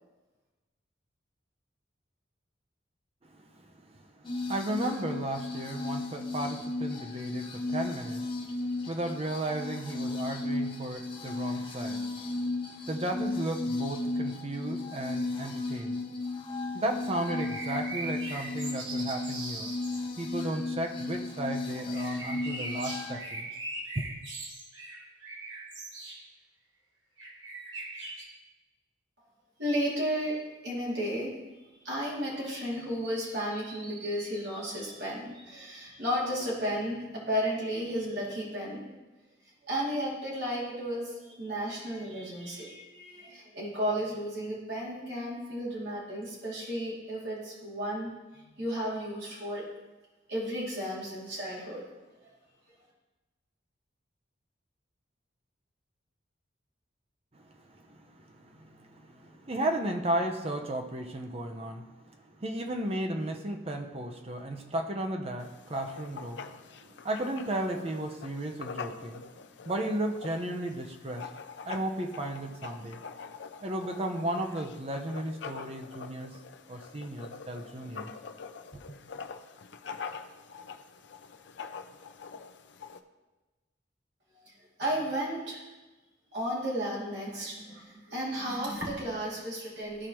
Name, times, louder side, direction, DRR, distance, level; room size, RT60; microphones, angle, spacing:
voice 1, 3.2-16.0 16.7-19.7 20.2-23.5 23.9-24.0 57.3-71.3 71.6-73.0 73.6-76.4 76.7-78.1 78.9-79.0, right 1 dB, 30° right, 4 dB, 0.7 m, -35 dB
sound 1, 4.2-23.1, left 2 dB, 25° left, 0.8 m, -35 dB
sound 2, 17.3-20.0 21.9-26.2 27.2-28.2, right 2 dB, 85° right, 1.5 m, -40 dB
voice 2, 29.6-30.4 30.6-31.3 31.8-38.8 39.6-49.6 50.3-51.8 52.2-52.3 84.4-84.5 84.8-85.6 86.3-90.1, equal, 60° right, -5 dB, 2.6 m, -33 dB
Writing, 65.4-83.0, left 5 dB, 65° left, 0.5 m, -45 dB
13.5 x 4.8 x 3.0 m, 1.1 s
head